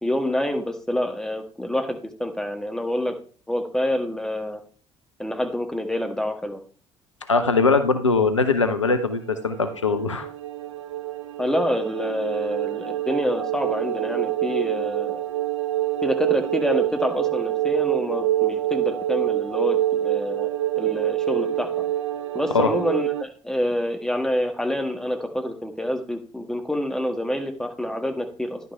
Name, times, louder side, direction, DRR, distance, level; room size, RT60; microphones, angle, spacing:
voice 1, 0.0-3.1 3.5-4.6 5.2-6.6 11.4-15.2 16.0-20.5 20.8-21.7 22.3-28.6, left 1 dB, 5° left, 4 dB, 1.6 m, -27 dB
voice 2, 7.3-10.3 22.5-22.7, left 4 dB, 90° left, 9 dB, 0.5 m, -21 dB
sound 1, 9.1-23.2, right 13 dB, 80° right, 0.4 m, -26 dB
10.5 x 5.9 x 3.4 m, 0.41 s
figure-of-eight pair, 50°, 15 cm